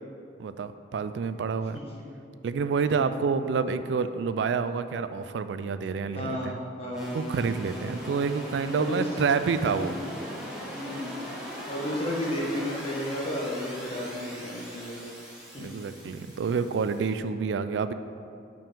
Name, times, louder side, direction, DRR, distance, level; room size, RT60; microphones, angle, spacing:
voice 1, 0.4-1.8 2.4-6.6 7.1-9.9 15.6-17.9, right 5 dB, 80° right, 12 dB, 0.3 m, -28 dB
voice 2, 2.8-3.1 6.1-7.1 8.7-9.1 9.6-9.9 10.7-11.2 11.7-15.0 15.5-15.7, left 1 dB, 35° left, -5 dB, 1.3 m, -33 dB
sound 1, 6.9-17.2, equal, 5° right, 1.2 m, -40 dB
5.5 x 5.3 x 5.2 m, 2.4 s
head